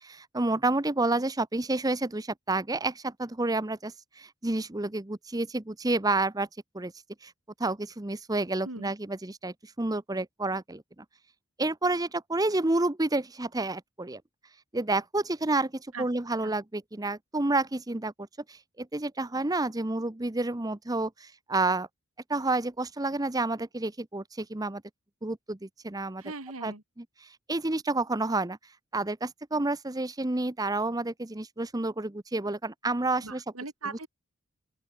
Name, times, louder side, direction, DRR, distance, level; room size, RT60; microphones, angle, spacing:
voice 1, 0.0-6.5 6.7-6.9 7.2-7.3 7.6-11.0 11.6-14.2 14.7-18.1 18.5-21.9 22.3-24.8 25.2-26.2 26.6-27.0 27.5-28.6 28.9-33.4, right 2 dB, 15° right, 0.8 m, -29 dB
voice 2, 26.2-26.8 33.2-34.1, right 3 dB, 80° right, 3.2 m, -39 dB
open air
head